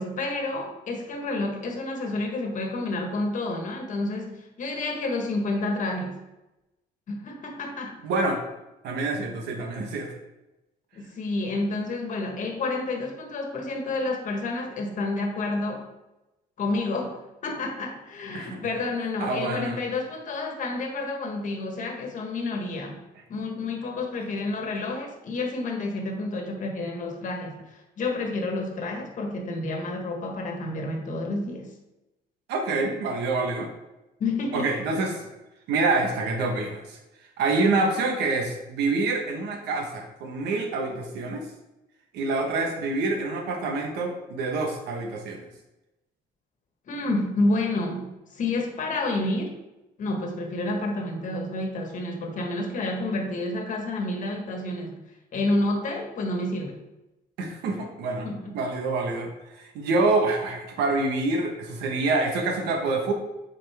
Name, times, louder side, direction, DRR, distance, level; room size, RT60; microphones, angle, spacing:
voice 1, 0.0-6.2 7.1-8.0 10.9-15.9 16.6-23.0 23.3-31.7 34.2-34.7 46.9-49.6 50.0-55.0 55.3-56.8 58.2-58.6, left 2 dB, 50° left, 3 dB, 1.4 m, -29 dB
voice 2, 8.0-8.4 8.8-10.1 18.3-18.6 19.2-19.8 32.5-33.7 34.5-35.2 35.7-37.0 37.4-41.4 42.1-45.5 57.4-58.3 58.5-63.1, right 3 dB, 80° right, 2 dB, 1.3 m, -26 dB
7.5 x 4.2 x 3.5 m, 0.96 s
cardioid pair, 110°, 17 cm